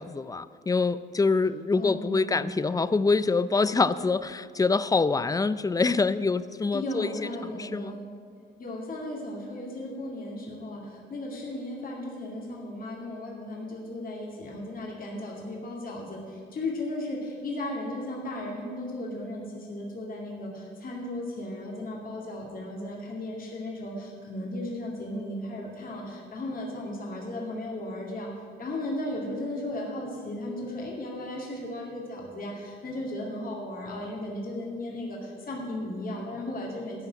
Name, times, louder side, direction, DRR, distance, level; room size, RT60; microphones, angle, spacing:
voice 1, 0.0-7.1 7.6-7.9, left 4 dB, 20° left, 15 dB, 0.4 m, -25 dB
voice 2, 1.7-2.4 6.7-8.1 8.6-28.3 28.6-37.1, left 1 dB, 45° left, -2 dB, 2.5 m, -35 dB
12.5 x 5.6 x 9.1 m, 2.1 s
cardioid pair, 90°, 20 cm